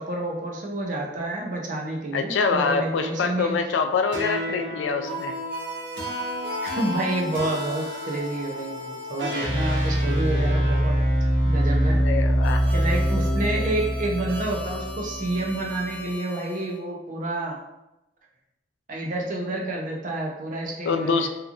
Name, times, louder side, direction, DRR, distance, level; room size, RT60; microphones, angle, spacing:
voice 1, 0.0-3.5 6.6-11.0 11.4-12.1 12.7-17.6 18.9-21.3, right 2 dB, 45° right, -1 dB, 0.5 m, -29 dB
voice 2, 2.1-5.3 11.9-12.6 20.8-21.3, left 5 dB, 75° left, 6 dB, 0.3 m, -25 dB
sound 1, 4.1-16.6, equal, 70° right, 0.8 m, -26 dB
2.9 x 2.3 x 2.4 m, 0.93 s
head